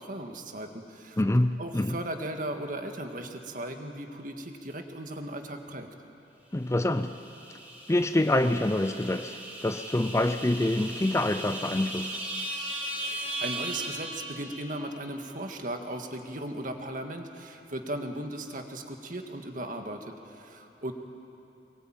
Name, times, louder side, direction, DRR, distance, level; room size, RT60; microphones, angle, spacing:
voice 1, 0.0-1.2 1.6-5.9 13.0-20.9, right 1 dB, 50° right, 2.0 m, -37 dB
voice 2, 1.2-2.0 6.5-7.2 7.9-12.2, left 1 dB, 15° left, 0.5 m, -26 dB
sound 1, 6.8-14.8, right 1 dB, 10° right, 3.9 m, -38 dB
24.0 x 21.5 x 9.1 m
head